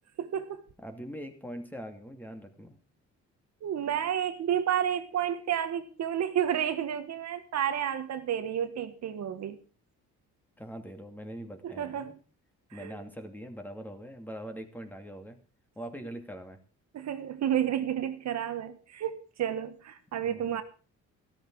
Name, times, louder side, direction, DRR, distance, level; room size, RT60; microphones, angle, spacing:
voice 1, 0.2-0.6 3.6-9.6 11.6-12.2 12.7-13.0 16.9-20.6, right 9 dB, 60° right, 9 dB, 1.5 m, -31 dB
voice 2, 0.8-2.8 10.6-12.1 12.7-15.4 15.8-16.6 20.2-20.6, equal, 5° left, 6 dB, 2.6 m, -42 dB
14.5 x 13.0 x 4.8 m, 0.36 s
cardioid pair, 125°, 31 cm